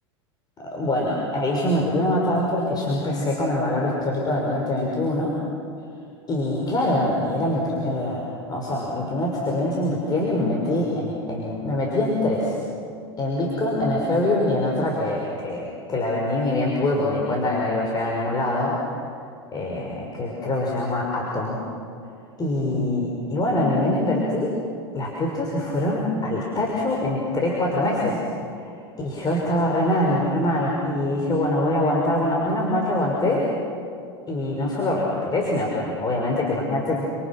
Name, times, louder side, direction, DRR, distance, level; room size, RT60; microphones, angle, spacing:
voice 1, 0.6-5.4 6.3-12.6 13.2-19.1 19.5-21.6 22.4-24.5 24.9-28.2 28.6-28.7 29.0-33.5 34.3-37.0, left 1 dB, 30° left, -2 dB, 6.1 m, -24 dB
29.5 x 28.0 x 6.2 m, 2.4 s
hypercardioid pair, 90°, 14 cm